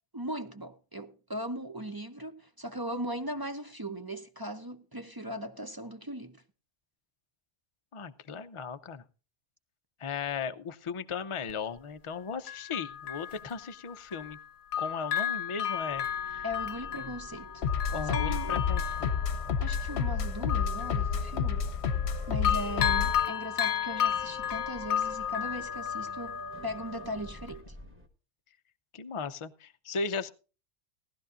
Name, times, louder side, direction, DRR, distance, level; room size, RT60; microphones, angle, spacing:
voice 1, 0.1-6.4 16.4-17.6 18.0-18.6 19.6-21.7 22.3-27.6, equal, 25° right, 0.5 m, -38 dB
voice 2, 7.9-9.0 10.0-14.4 14.8-16.4 17.0-17.1 17.9-19.1 28.9-30.3, left 5 dB, 40° left, 0.5 m, -37 dB
Bell, 11.5-11.6 12.5-14.4 14.7-22.1 22.4-27.1 27.5-27.6, left 10 dB, 90° left, 1.2 m, -33 dB
sound 1, 15.9-28.1, equal, 10° right, 1.2 m, -48 dB
sound 2, 17.6-23.2, left 6 dB, 55° left, 1.0 m, -30 dB
18.5 x 12.5 x 2.5 m
omnidirectional pair, 1.4 m